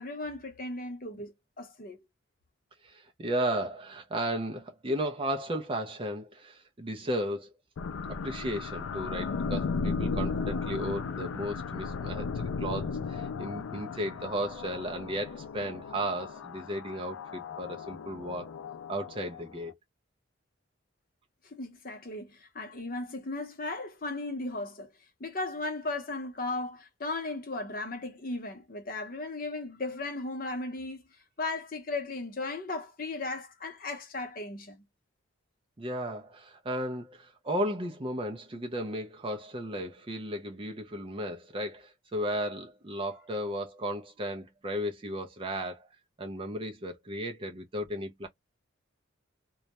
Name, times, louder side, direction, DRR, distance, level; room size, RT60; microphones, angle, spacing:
voice 1, 0.0-2.0 21.4-24.9 25.2-31.0 31.4-34.8, left 2 dB, 45° left, 0.7 m, -36 dB
voice 2, 2.8-7.5 8.1-18.5 18.9-19.7 35.8-45.9 46.2-48.3, equal, 25° right, 0.4 m, -35 dB
sound 1, 7.8-19.7, left 4 dB, 85° left, 0.4 m, -35 dB
2.3 x 2.0 x 2.8 m
head